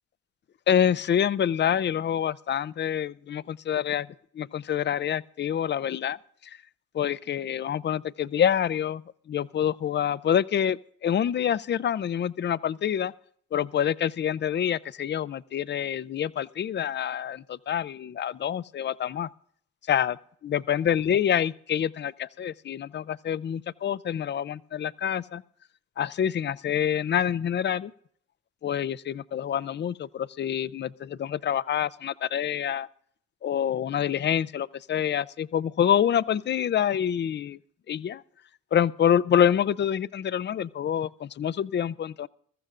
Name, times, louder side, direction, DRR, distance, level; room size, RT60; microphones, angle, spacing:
voice 1, 0.7-4.1 4.3-6.2 6.4-6.6 6.9-9.0 9.3-13.1 13.5-19.3 19.9-20.2 20.4-25.4 26.0-27.9 28.6-32.9 33.4-37.6 37.9-38.2 38.7-42.3, left 9 dB, 35° left, 0.5 m, -26 dB
22.0 x 14.0 x 2.5 m
cardioid pair, 90°, 30 cm